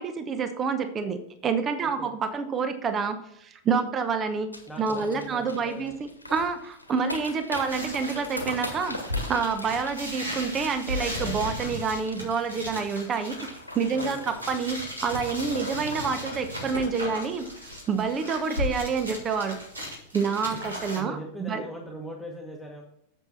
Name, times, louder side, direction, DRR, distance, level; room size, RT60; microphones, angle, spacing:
voice 1, 0.0-4.5 4.8-9.0 9.3-13.4 13.7-17.5 17.9-19.6 20.1-21.6, right 5 dB, 25° right, 9 dB, 0.9 m, -28 dB
sound 1, 4.5-18.3 18.6-18.7 19.0-19.3 19.6-19.8, left 1 dB, 85° left, 1.6 m, -40 dB
voice 2, 4.7-6.0 13.9-14.4 20.9-22.8, equal, 5° left, -1 dB, 1.3 m, -40 dB
sound 2, 7.7-21.0, left 1 dB, 80° right, 3.0 m, -36 dB
8.1 x 7.5 x 4.1 m, 0.77 s
figure-of-eight pair, 90°, 0 cm